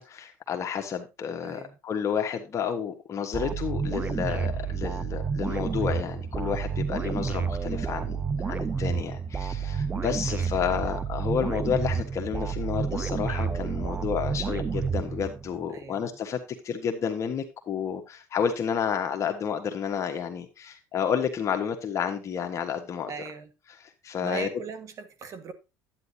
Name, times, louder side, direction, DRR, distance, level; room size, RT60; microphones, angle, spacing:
voice 1, 0.0-8.2 8.4-16.4 16.6-23.1 23.8-24.5, left 7 dB, 40° left, 1.4 m, -30 dB
voice 2, 1.4-1.7 10.6-10.8 15.7-16.2 23.1-23.5 24.2-25.5, right 5 dB, 45° right, 1.6 m, -39 dB
sound 1, 3.3-15.6, right 6 dB, 20° right, 0.7 m, -30 dB
10.5 x 9.3 x 2.8 m
supercardioid pair, 100°, 8 cm